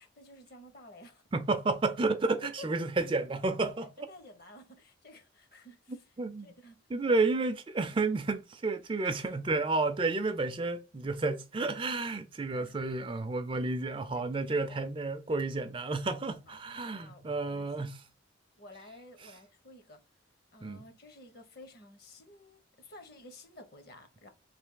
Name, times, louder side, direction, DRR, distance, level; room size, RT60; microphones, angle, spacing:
voice 1, 0.0-1.2 2.6-2.7 4.1-6.1 6.4-7.3 7.8-8.0 9.0-9.6 12.5-12.7 14.1-14.9 16.5-16.6 16.8-17.9 18.6-20.0 20.5-24.3, left 1 dB, 50° left, 0.9 m, -53 dB
voice 2, 1.3-4.1 6.2-6.5 6.9-18.0 20.6-20.8, right 3 dB, 25° right, 0.4 m, -31 dB
3.3 x 2.7 x 3.8 m
head